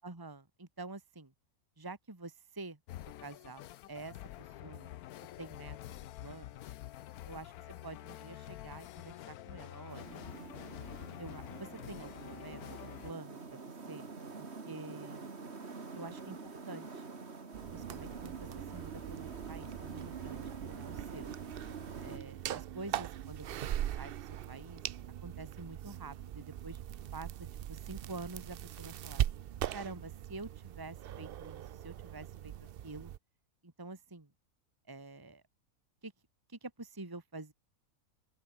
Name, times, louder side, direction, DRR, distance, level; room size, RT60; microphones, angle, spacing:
voice 1, 0.0-1.3 1.8-2.8 3.2-4.9 5.4-5.8 6.2-6.6 7.3-7.5 7.8-10.2 11.2-14.1 14.4-15.3 15.9-17.1 17.7-21.4 22.0-24.8 25.2-26.8 27.1-27.3 27.7-29.2 29.7-32.5 32.8-33.1 33.6-34.3 34.9-35.4 36.0-36.1 36.5-37.5, right 3 dB, 15° right, 1.8 m, -48 dB
sound 1, 2.9-13.1, left 13 dB, 85° left, 1.2 m, -48 dB
sound 2, 9.9-22.2, right 4 dB, 45° right, 2.5 m, -47 dB
sound 3, 17.5-33.2, right 11 dB, 65° right, 0.5 m, -41 dB
open air
omnidirectional pair, 1.5 m